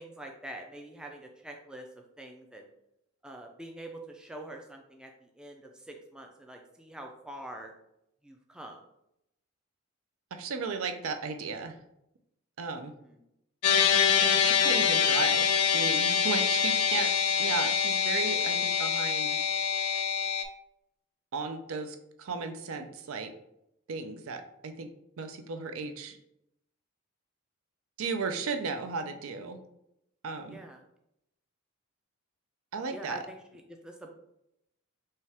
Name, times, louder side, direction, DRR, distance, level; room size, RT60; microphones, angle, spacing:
voice 1, 0.0-1.9 2.2-2.7 3.2-7.7 8.2-8.8 13.0-13.2 16.9-17.1 30.4-30.8 32.9-34.1, right 1 dB, 5° right, 2 dB, 0.3 m, -45 dB
voice 2, 10.3-11.7 12.6-12.9 14.2-17.1 17.4-19.4 21.3-23.3 23.9-24.9 25.2-26.2 28.0-29.6 30.2-30.6 32.7-33.2, right 4 dB, 65° right, 7 dB, 0.5 m, -35 dB
sound 1, 13.6-20.4, left 7 dB, 85° left, 0.4 m, -25 dB
5.4 x 2.3 x 3.3 m, 0.82 s
head